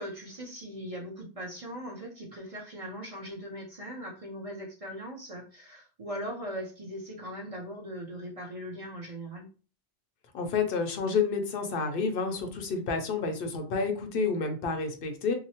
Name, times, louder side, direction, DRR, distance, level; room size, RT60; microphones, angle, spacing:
voice 1, 0.0-9.5, equal, 40° right, -3 dB, 0.5 m, -40 dB
voice 2, 10.3-15.3, left 4 dB, 60° left, 5 dB, 0.6 m, -29 dB
2.8 x 2.1 x 2.7 m, 0.35 s
omnidirectional pair, 1.3 m